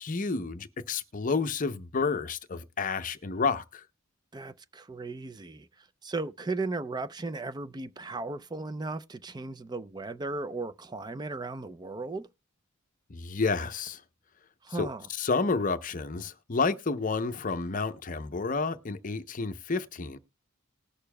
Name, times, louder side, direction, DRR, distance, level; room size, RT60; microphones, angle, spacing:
voice 1, 0.0-3.8 13.1-14.0 14.8-20.2, left 4 dB, 40° left, 0.7 m, -30 dB
voice 2, 4.3-12.3 14.6-15.1, right 3 dB, 20° right, 0.4 m, -36 dB
19.5 x 6.6 x 2.2 m
head